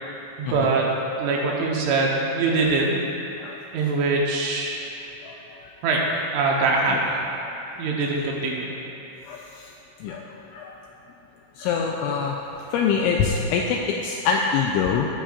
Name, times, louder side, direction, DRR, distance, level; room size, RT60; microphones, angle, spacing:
voice 1, 0.4-0.9 1.2-2.9 3.7-4.8 5.8-6.0 6.3-7.3 7.8-8.7, right 3 dB, 75° right, -2 dB, 3.4 m, -23 dB
voice 2, 5.2-5.7 6.9-7.0 9.3-9.7 10.0-10.3 10.5-10.7 11.6-15.1, left 6 dB, 85° left, 0 dB, 2.7 m, -25 dB
19.5 x 9.0 x 2.6 m, 2.9 s
omnidirectional pair, 5.9 m